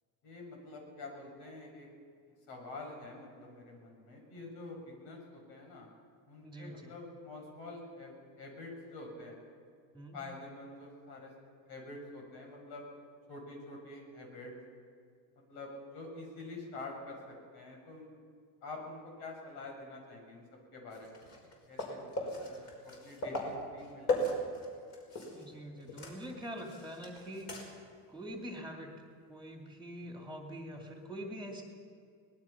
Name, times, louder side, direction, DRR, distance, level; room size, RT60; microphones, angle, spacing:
voice 1, 0.2-1.9 2.3-5.9 6.3-9.4 10.1-11.3 11.7-12.8 13.3-14.5 15.5-18.1 18.6-20.5 20.7-21.2 21.7-22.6 22.8-24.2, left 2 dB, 85° left, 1 dB, 7.2 m, -47 dB
voice 2, 6.4-6.9 9.9-10.2 25.3-27.6 28.1-28.9 29.3-31.6, equal, ahead, 0 dB, 2.5 m, -44 dB
sound 1, 20.9-25.5 25.8-27.9 28.3-28.4 30.9-31.0, left 1 dB, 45° left, 5.6 m, -38 dB
24.5 x 20.0 x 5.9 m, 2.2 s
cardioid pair, 155°, 38 cm